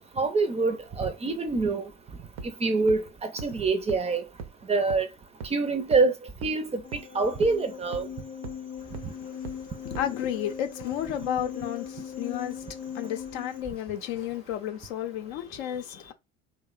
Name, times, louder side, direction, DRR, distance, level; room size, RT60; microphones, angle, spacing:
voice 1, 0.0-1.9 2.4-4.2 4.7-5.1 5.5-6.1 6.4-6.8 7.1-8.1, right 3 dB, 20° right, 0.4 m, -25 dB
sound 1, 2.4-2.5 2.9-3.0 3.4-3.5 3.9-4.0 4.4-4.5 4.9-5.0 5.4-5.5 5.9-6.0 6.4-6.5 6.9-7.0 7.4-7.5 7.9-8.0 8.4-8.5 8.9-9.0 9.4-9.5 9.9-10.0, right 5 dB, 85° right, 0.6 m, -37 dB
sound 2, 6.8-13.6, left 8 dB, 25° left, 0.6 m, -39 dB
voice 2, 8.8-16.1, left 10 dB, 80° left, 0.5 m, -33 dB
2.7 x 2.1 x 2.3 m
hypercardioid pair, 80°, 32 cm